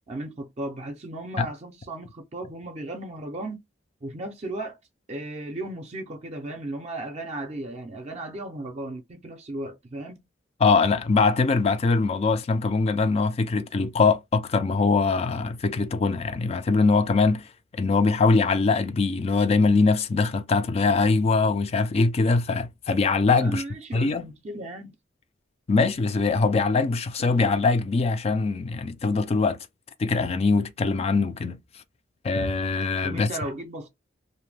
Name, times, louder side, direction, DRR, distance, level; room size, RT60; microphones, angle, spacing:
voice 1, 0.1-3.6 4.0-4.8 5.1-10.2 23.4-24.9 27.2-27.3 33.0-33.9, right 1 dB, 35° right, 0.5 m, -35 dB
voice 2, 10.6-17.5 17.7-23.6 23.9-24.2 25.7-29.6 30.0-31.6 32.2-33.3, left 4 dB, 35° left, 0.3 m, -22 dB
2.6 x 2.1 x 3.2 m
head